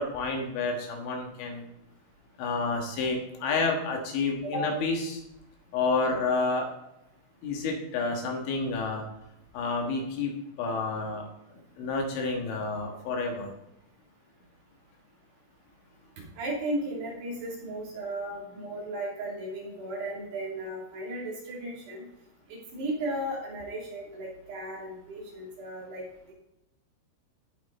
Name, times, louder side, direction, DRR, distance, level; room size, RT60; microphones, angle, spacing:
voice 1, 0.0-1.6 2.4-5.2 5.7-6.7 7.4-9.0 9.5-11.2 11.5-13.5, left 3 dB, 75° left, 1 dB, 3.8 m, -30 dB
voice 2, 16.3-22.1 22.5-26.3, right 1 dB, 55° right, -5 dB, 5.0 m, -35 dB
17.0 x 6.2 x 4.2 m, 0.88 s
omnidirectional pair, 5.8 m